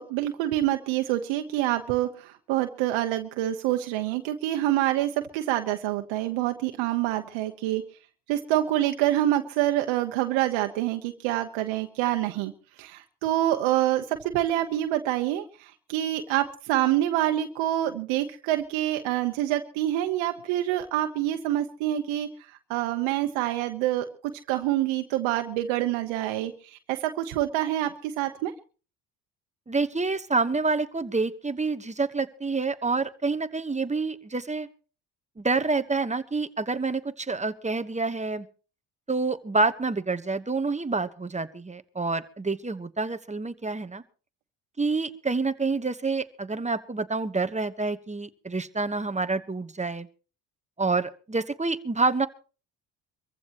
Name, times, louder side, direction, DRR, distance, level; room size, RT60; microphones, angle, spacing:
voice 1, 0.0-7.8 8.3-12.5 12.8-22.3 22.7-24.1 24.5-28.5, right 13 dB, 80° right, 6 dB, 1.1 m, -26 dB
voice 2, 29.7-34.7 35.4-38.5 39.1-44.0 44.8-50.1 50.8-52.3, right 3 dB, 15° right, 10 dB, 1.2 m, -28 dB
24.0 x 15.0 x 3.0 m, 0.37 s
supercardioid pair, 70°, 45 cm